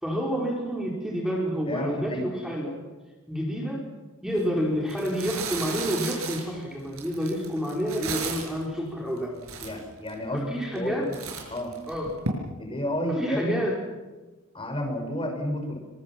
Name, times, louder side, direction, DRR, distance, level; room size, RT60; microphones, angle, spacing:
voice 1, 0.0-2.8 3.3-3.9 4.2-9.4 10.3-11.1 11.9-12.2 13.1-13.8, equal, 5° right, -1 dB, 4.8 m, -29 dB
voice 2, 1.7-2.3 9.6-11.0 11.5-11.7 12.6-13.7 14.5-15.8, equal, 25° left, 3 dB, 6.1 m, -31 dB
sound 1, 4.3-4.4 4.9-8.6 9.2-9.3 9.4-10.1 10.6-10.9 11.1-12.3, right 5 dB, 75° right, 6.7 m, -35 dB
27.0 x 25.0 x 6.1 m, 1.2 s
head